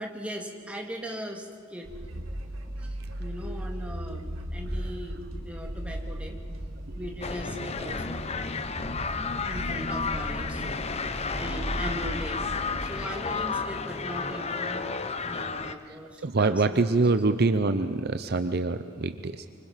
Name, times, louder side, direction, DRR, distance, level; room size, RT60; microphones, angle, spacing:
voice 1, 0.0-1.9 2.8-6.4 6.9-8.3 9.4-10.7 11.3-12.5 12.8-14.9 15.2-17.1, equal, 5° right, 1 dB, 2.1 m, -39 dB
sound 1, 1.8-12.9, equal, 85° right, 2.0 m, -37 dB
sound 2, 7.2-15.7, left 4 dB, 30° left, 0.8 m, -32 dB
voice 2, 16.2-19.5, right 3 dB, 50° right, 10 dB, 0.7 m, -25 dB
25.5 x 25.0 x 5.8 m, 2.2 s
head